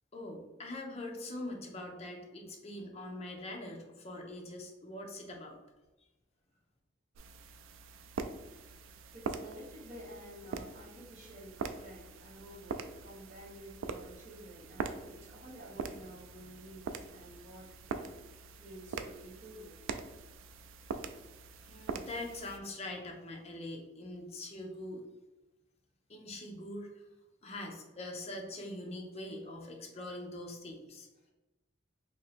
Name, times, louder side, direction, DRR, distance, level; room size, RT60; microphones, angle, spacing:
voice 1, 0.1-5.6 21.7-25.0 26.1-27.0 27.4-31.1, left 1 dB, 30° left, 1 dB, 0.6 m, -43 dB
sound 1, 7.1-22.6, right 5 dB, 85° right, 0.3 m, -43 dB
voice 2, 9.1-18.1 18.6-19.7, right 1 dB, 35° right, -6 dB, 1.3 m, -51 dB
2.8 x 2.7 x 4.1 m, 1.1 s
head